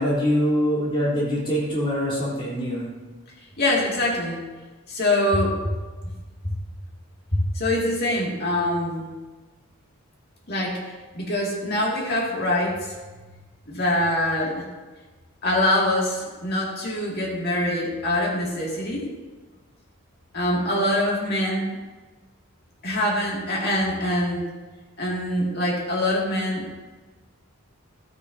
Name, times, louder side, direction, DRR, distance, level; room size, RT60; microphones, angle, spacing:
voice 1, 0.0-2.9, equal, 25° left, -8 dB, 3.6 m, -24 dB
voice 2, 3.6-4.4 4.9-5.6 7.3-9.1 10.5-10.8 11.1-12.9 13.7-14.6 15.4-19.1 20.3-21.8 22.8-24.4 25.0-26.7, left 1 dB, 45° left, -3 dB, 2.4 m, -24 dB
12.5 x 9.6 x 2.8 m, 1.3 s
head